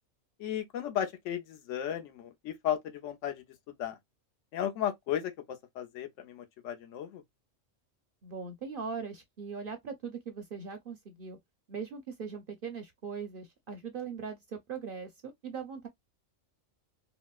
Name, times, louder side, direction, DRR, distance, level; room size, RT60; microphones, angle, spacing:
voice 1, 0.4-3.4 3.8-4.0 4.5-7.2, left 10 dB, 70° left, 1.0 m, -35 dB
voice 2, 8.2-11.4 11.7-15.9, right 5 dB, 55° right, 0.7 m, -40 dB
4.0 x 2.0 x 2.3 m
omnidirectional pair, 1.3 m